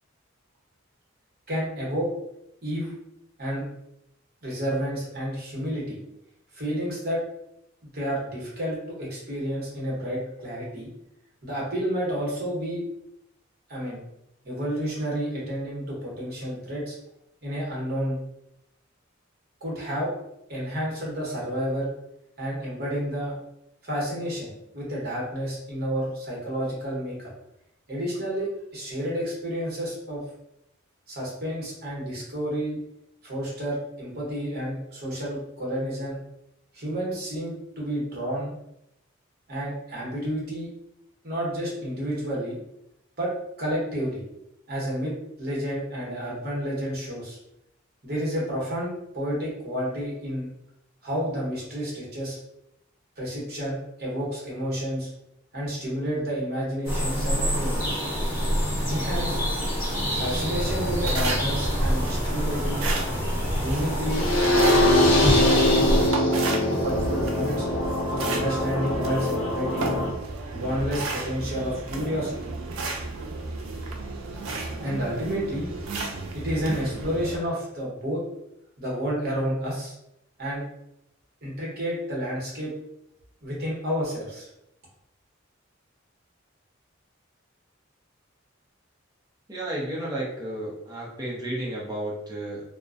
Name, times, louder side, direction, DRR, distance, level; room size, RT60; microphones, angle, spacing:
voice 1, 1.5-2.1 2.6-2.9 3.4-3.7 4.4-6.0 6.5-7.2 7.9-10.9 11.4-12.8 13.7-14.0 14.4-17.0 17.4-18.2 19.6-20.1 20.5-21.9 22.4-23.4 23.8-27.3 27.9-30.2 31.1-32.8 33.2-36.2 36.7-38.5 39.5-40.7 41.2-42.6 43.2-44.3 44.7-47.4 48.0-50.5 51.0-52.4 53.2-55.1 55.5-58.1 58.9-59.4 60.1-62.8 63.5-64.3 64.9-66.0 66.7-67.7 68.1-70.0 70.5-72.5 74.8-75.7 76.3-78.2 78.8-80.0 80.4-80.6 81.4-82.7 83.4-84.5, equal, 50° right, -5 dB, 0.9 m, -30 dB
sound 1, 56.8-66.1, equal, 20° left, 1.4 m, -26 dB
sound 2, 60.2-77.4, right 3 dB, 80° right, 0.4 m, -33 dB
sound 3, 64.1-70.1, left 1 dB, 80° left, 0.5 m, -23 dB
voice 2, 89.5-92.6, right 1 dB, 20° right, -5 dB, 0.6 m, -32 dB
2.4 x 2.1 x 2.4 m, 0.83 s
head